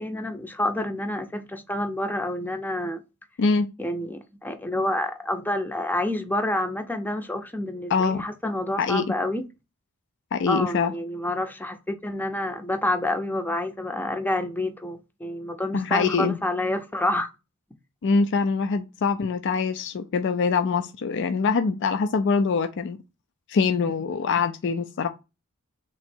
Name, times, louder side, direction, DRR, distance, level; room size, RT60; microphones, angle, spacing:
voice 1, 0.0-3.0 3.8-9.4 10.5-17.3, left 1 dB, 10° left, 0.6 m, -28 dB
voice 2, 3.4-3.7 7.9-8.2 8.8-9.1 10.3-10.9 15.7-16.4 18.0-23.0 23.5-25.1, left 5 dB, 55° left, 0.4 m, -24 dB
3.5 x 3.0 x 4.3 m
head